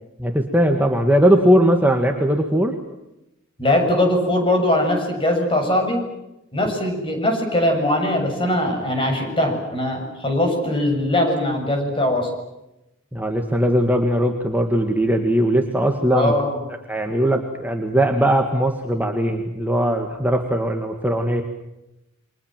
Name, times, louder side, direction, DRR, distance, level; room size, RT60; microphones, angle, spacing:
voice 1, 0.2-2.7 13.1-16.3 16.9-21.4, equal, 10° right, 3 dB, 2.0 m, -19 dB
voice 2, 3.6-6.0 6.5-12.3 16.1-16.6, left 1 dB, 25° left, 3 dB, 7.3 m, -21 dB
29.5 x 24.5 x 7.7 m, 0.90 s
head